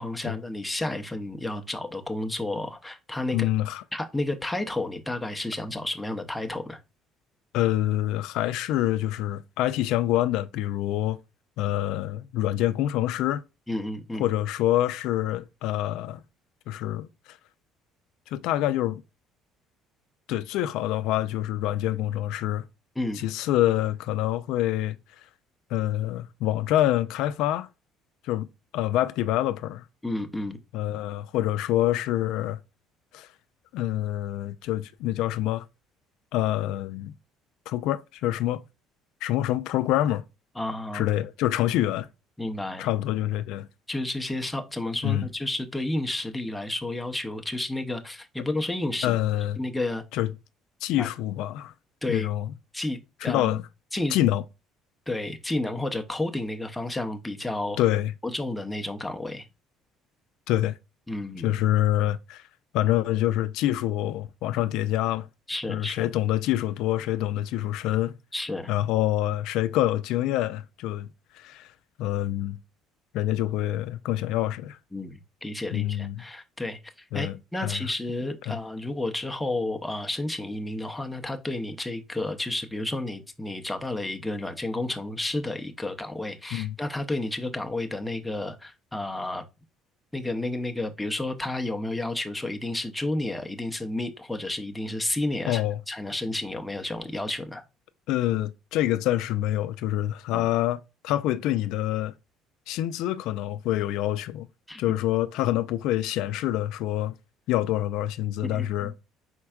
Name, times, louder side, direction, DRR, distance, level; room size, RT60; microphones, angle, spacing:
voice 1, 0.0-3.5 3.9-6.8 13.7-14.2 23.0-23.2 30.0-30.6 40.6-41.1 42.4-42.9 43.9-49.2 49.6-50.0 51.0-51.1 52.0-52.3 52.7-53.5 53.9-54.2 55.1-57.8 58.2-59.5 61.1-61.5 65.5-66.1 68.3-68.7 74.9-89.4 90.1-97.6 100.3-100.5 104.7-104.8 108.4-108.9, left 2 dB, 5° left, 0.6 m, -31 dB
voice 2, 3.3-3.8 7.5-11.2 11.6-13.4 14.2-16.2 16.7-17.4 18.3-19.0 20.3-22.7 23.2-25.0 25.7-27.7 28.2-28.5 28.7-29.9 30.7-32.6 33.1-33.3 33.7-35.7 36.3-37.1 37.7-38.6 39.2-40.2 40.9-42.1 42.8-43.7 45.0-45.3 49.0-49.6 50.1-50.3 50.8-51.7 52.1-52.5 53.2-53.6 54.1-54.4 57.8-58.1 60.5-60.7 61.4-62.4 62.7-65.3 65.7-68.1 68.7-71.1 71.3-71.7 72.0-72.6 73.1-74.8 75.7-76.2 77.1-77.8 78.5-78.6 86.5-86.7 95.5-95.8 98.1-102.1 102.7-104.5 104.8-107.2 107.5-108.9, left 13 dB, 75° left, 0.3 m, -26 dB
4.5 x 4.3 x 2.3 m
cardioid pair, 145°, 0 cm